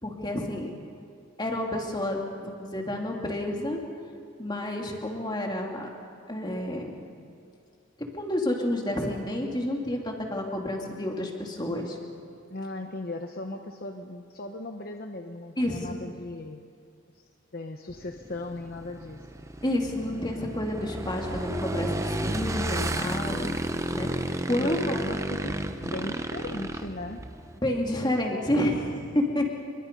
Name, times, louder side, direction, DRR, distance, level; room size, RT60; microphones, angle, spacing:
voice 1, 0.0-0.7 1.4-3.8 4.4-5.9 6.3-6.9 8.1-12.0 15.6-16.0 19.6-23.5 23.9-24.1 24.5-25.0 27.6-29.5, left 1 dB, 20° left, 0 dB, 2.8 m, -29 dB
voice 2, 12.5-16.6 17.5-19.5 24.6-27.2, left 2 dB, 45° left, 4 dB, 1.0 m, -37 dB
Motorcycle / Engine, 17.9-27.6, right 1 dB, 15° right, 0.8 m, -32 dB
29.0 x 23.5 x 5.4 m, 2.3 s
head